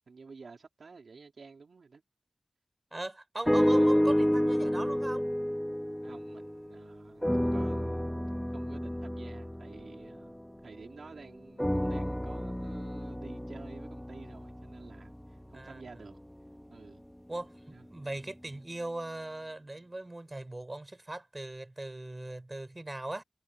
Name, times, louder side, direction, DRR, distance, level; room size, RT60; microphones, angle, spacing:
voice 1, 0.0-2.0 6.0-8.1 8.5-16.2 16.7-17.0 17.7-17.8, right 4 dB, 80° right, 5.3 m, -51 dB
voice 2, 2.9-5.3 15.5-15.8 17.3-23.2, right 2 dB, 30° right, 6.5 m, -39 dB
sound 1, 3.5-6.8 7.2-11.0 11.6-15.8 16.5-16.6, equal, 5° left, 3.3 m, -30 dB
cardioid pair, 45°, 0 cm